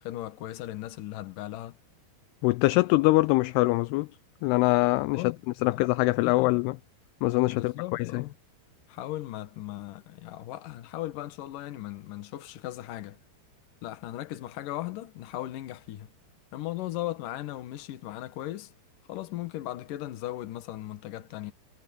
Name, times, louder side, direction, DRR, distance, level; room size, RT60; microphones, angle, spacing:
voice 1, 0.0-1.8 5.1-5.4 5.7-5.9 6.2-6.5 7.5-8.3 8.9-13.2 13.8-16.1 16.5-18.7 19.1-21.5, left 15 dB, 65° left, 2.5 m, -37 dB
voice 2, 2.4-4.1 4.4-5.3 5.6-6.8 7.2-8.2, left 21 dB, 80° left, 2.5 m, -23 dB
omnidirectional pair, 4.9 m